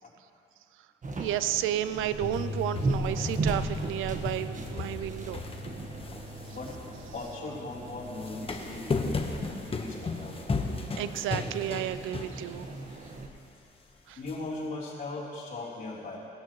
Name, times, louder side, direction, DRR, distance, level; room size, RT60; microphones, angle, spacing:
sound 1, 1.0-13.3, right 2 dB, 40° right, 1.4 m, -38 dB
voice 1, 1.2-5.4 11.0-12.7 14.1-14.2, right 12 dB, 85° right, 13 dB, 0.5 m, -32 dB
sound 2, 2.2-8.5, left 1 dB, 60° left, 3.3 m, -41 dB
sound 3, 2.3-7.4 8.0-12.7 13.1-13.2 14.3-14.4, left 3 dB, 30° left, 1.2 m, -35 dB
voice 2, 6.5-6.8 7.1-10.4 12.9-13.0 13.9-16.2, left 2 dB, 45° left, -6 dB, 3.7 m, -39 dB
19.0 x 12.5 x 3.1 m, 2.5 s
cardioid pair, 90°, 20 cm